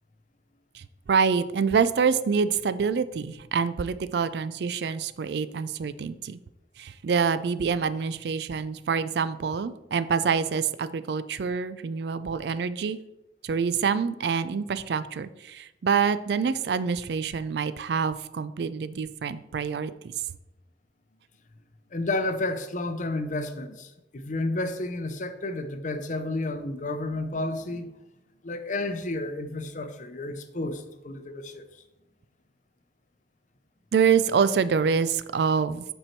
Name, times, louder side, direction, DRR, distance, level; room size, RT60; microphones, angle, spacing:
voice 1, 0.7-6.4 6.8-13.0 13.4-20.1 33.9-35.9, right 6 dB, 60° right, 0.4 m, -26 dB
voice 2, 21.9-27.9 28.4-31.6, left 2 dB, 45° left, 0.6 m, -31 dB
7.8 x 4.5 x 4.4 m
head